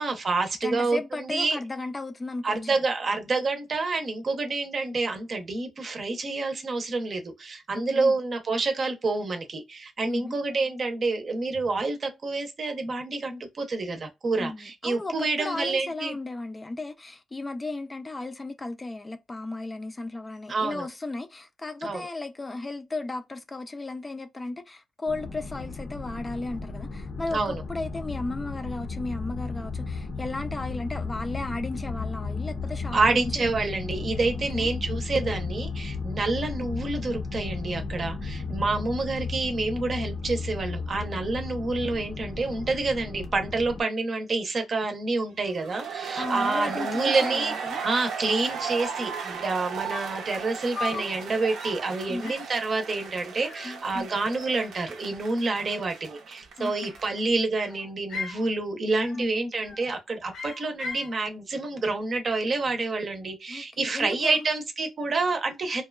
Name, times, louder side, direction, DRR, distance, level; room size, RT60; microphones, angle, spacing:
voice 1, 0.0-1.6 2.4-16.1 20.5-20.9 21.8-22.0 27.3-27.6 32.9-47.5 47.8-65.8, right 3 dB, 45° right, 0.7 m, -28 dB
voice 2, 0.6-2.8 7.9-8.2 10.1-10.4 14.4-33.5 34.5-34.7 46.2-47.8 52.1-52.3 53.6-54.1 56.6-56.9 59.1-59.3 63.5-64.4, left 2 dB, 20° left, 0.3 m, -35 dB
sound 1, 25.1-43.8, left 4 dB, 65° left, 0.6 m, -34 dB
sound 2, 45.5-57.2, right 6 dB, 90° right, 0.6 m, -36 dB
sound 3, 48.8-48.9 49.1-49.5 49.9-50.3 50.8-51.1 51.5-51.8 52.2-52.6 53.4-54.2 54.5-55.2 56.4-57.1 57.5-58.5 59.0-59.3 59.6-59.9 60.3-61.1, left 4 dB, 90° left, 1.0 m, -39 dB
2.8 x 2.2 x 2.2 m
cardioid pair, 120°, 0 cm